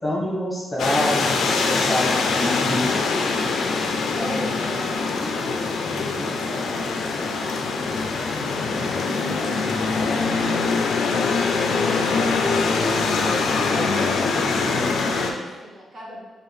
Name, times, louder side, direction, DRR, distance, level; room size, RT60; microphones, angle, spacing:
voice 1, 0.0-2.9, left 1 dB, 15° left, -5 dB, 1.0 m, -26 dB
sound 1, 0.8-15.3, left 4 dB, 70° left, 0.4 m, -23 dB
voice 2, 4.1-5.6 6.2-12.0 12.9-14.4 14.8-16.2, equal, 40° right, -3 dB, 0.9 m, -38 dB
4.5 x 2.5 x 3.2 m, 1.2 s
cardioid pair, 115°, 0 cm